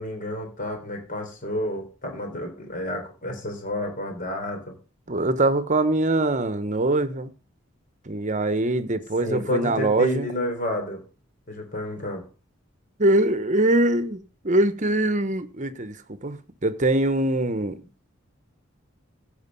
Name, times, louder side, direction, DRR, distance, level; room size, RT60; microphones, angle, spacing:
voice 1, 0.0-4.7 9.2-11.0 11.5-12.2, left 1 dB, 45° left, 3.8 m, -30 dB
voice 2, 5.1-7.3 8.0-10.3 13.0-17.8, right 2 dB, 40° right, 1.0 m, -23 dB
15.5 x 5.2 x 5.4 m
head